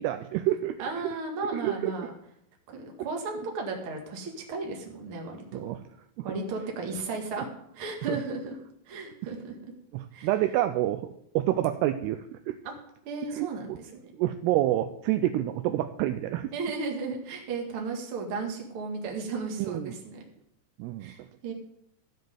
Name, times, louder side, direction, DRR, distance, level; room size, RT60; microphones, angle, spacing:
voice 1, 0.0-0.8 1.5-2.1 5.5-5.8 6.2-6.3 8.1-8.2 9.9-12.6 13.3-13.8 14.1-16.5 19.6-19.9 20.8-21.1, right 13 dB, 80° right, 9 dB, 2.4 m, -28 dB
voice 2, 0.8-2.1 2.7-5.7 6.2-7.5 7.7-8.5 8.9-9.6 10.1-10.3 12.6-12.7 13.1-14.1 16.5-20.2 21.0-21.5, right 3 dB, 45° right, 1 dB, 2.0 m, -35 dB
14.0 x 5.3 x 7.8 m, 0.75 s
omnidirectional pair, 4.9 m